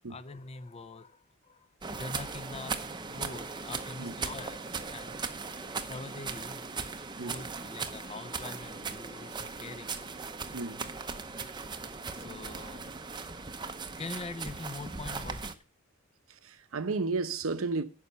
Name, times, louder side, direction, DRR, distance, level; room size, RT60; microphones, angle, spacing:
voice 1, 0.1-1.7 1.9-5.2 5.6-6.6 7.2-10.2 11.0-11.7 12.0-13.0 13.3-13.4 14.0-15.5, left 3 dB, 30° left, 0.6 m, -44 dB
sound 1, 1.8-15.5, right 4 dB, 20° right, 0.7 m, -38 dB
voice 2, 10.5-10.9 16.4-17.8, right 3 dB, 75° right, 0.8 m, -33 dB
9.6 x 5.7 x 6.9 m
head